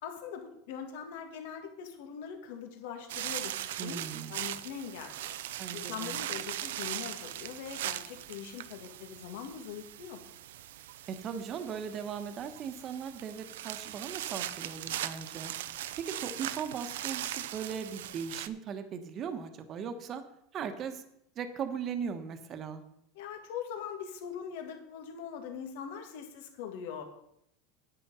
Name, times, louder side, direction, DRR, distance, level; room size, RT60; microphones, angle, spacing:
voice 1, 0.0-4.0 4.3-5.4 5.7-10.2 23.2-27.0, left 7 dB, 75° left, 5 dB, 2.2 m, -42 dB
sound 1, 3.1-18.5, right 13 dB, 85° right, 0.6 m, -40 dB
voice 2, 3.8-4.3 5.6-6.2 11.1-15.5 16.0-20.2 20.5-21.0 21.3-22.8, right 7 dB, 35° right, 9 dB, 1.3 m, -38 dB
9.8 x 8.9 x 5.7 m, 0.76 s
supercardioid pair, 135°, 0 cm